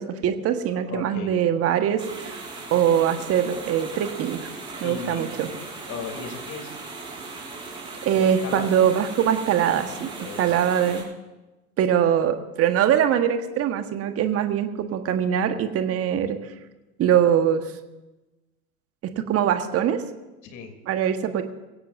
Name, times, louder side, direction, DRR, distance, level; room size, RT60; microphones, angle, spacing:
voice 1, 0.0-2.4 2.7-4.5 4.8-5.5 8.0-11.1 11.8-16.4 17.0-17.7 19.2-20.0 20.9-21.4, right 9 dB, 30° right, 8 dB, 1.4 m, -22 dB
voice 2, 0.7-1.4 4.8-5.3 5.9-6.8 8.1-8.7 10.2-10.7 20.4-20.7, left 5 dB, 40° left, 5 dB, 3.2 m, -36 dB
sound 1, 2.0-11.0, right 3 dB, 10° right, 6.6 m, -38 dB
24.0 x 16.5 x 2.7 m, 1.1 s
figure-of-eight pair, 90°, 45 cm